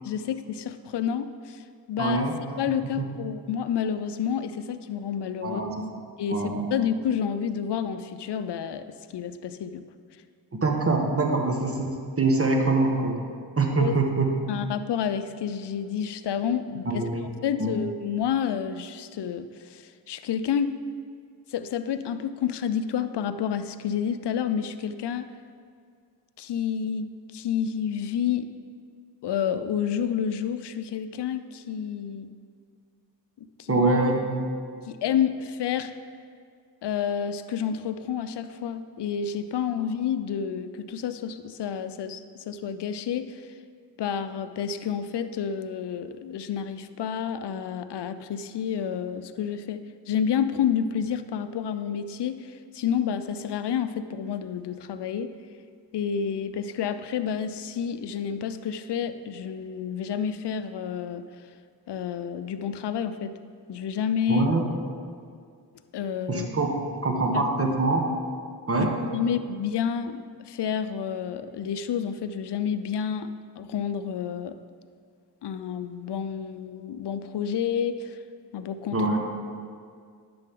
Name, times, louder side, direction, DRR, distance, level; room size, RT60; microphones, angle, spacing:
voice 1, 0.0-2.2 2.6-5.6 6.2-6.4 6.7-9.8 13.8-14.0 14.5-17.0 17.4-20.8 21.5-25.3 26.4-28.5 29.2-32.3 33.4-33.9 34.9-35.9 36.8-43.5 44.0-55.3 55.9-61.3 61.9-63.4 63.7-64.5 65.9-66.5 67.3-67.4 68.8-68.9 69.1-73.3 73.6-74.6 75.4-78.2 78.5-79.0, left 8 dB, 65° left, 11 dB, 0.6 m, -29 dB
voice 2, 2.0-2.4 2.9-3.1 5.4-5.8 6.3-6.7 10.5-13.2 13.6-14.3 16.8-17.3 17.6-17.8 33.7-34.4 64.3-64.7 66.3-68.1 68.7-68.9 78.9-79.2, right 3 dB, 30° right, 2 dB, 1.6 m, -24 dB
10.5 x 7.6 x 3.8 m, 2.2 s
cardioid pair, 50°, 44 cm